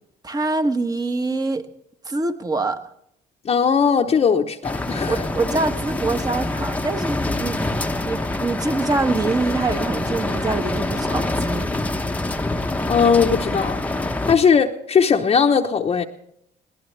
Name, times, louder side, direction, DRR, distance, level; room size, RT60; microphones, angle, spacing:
voice 1, 0.2-1.6 2.0-2.8 5.1-7.6 8.0-11.7, right 3 dB, 20° right, 1.2 m, -24 dB
voice 2, 3.4-5.1 12.9-13.8 14.3-16.0, left 6 dB, 35° left, 0.9 m, -18 dB
sound 1, 4.6-14.4, left 2 dB, 10° left, 0.9 m, -25 dB
21.0 x 18.0 x 3.3 m
cardioid pair, 110°, 17 cm